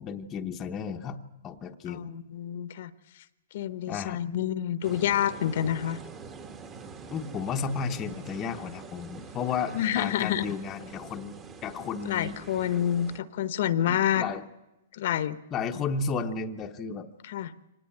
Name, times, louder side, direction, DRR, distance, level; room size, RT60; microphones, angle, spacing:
voice 1, 0.0-2.1 3.9-4.2 7.1-12.4 13.8-14.4 15.5-17.1, left 5 dB, 15° left, 4 dB, 1.0 m, -33 dB
voice 2, 1.9-2.9 3.5-6.0 9.7-10.4 12.1-14.2 14.9-15.4 17.2-17.5, left 10 dB, 45° left, 14 dB, 1.0 m, -28 dB
sound 1, 4.8-13.2, right 5 dB, 15° right, 1.3 m, -45 dB
24.5 x 19.0 x 8.9 m, 0.99 s
hypercardioid pair, 175°, 0 cm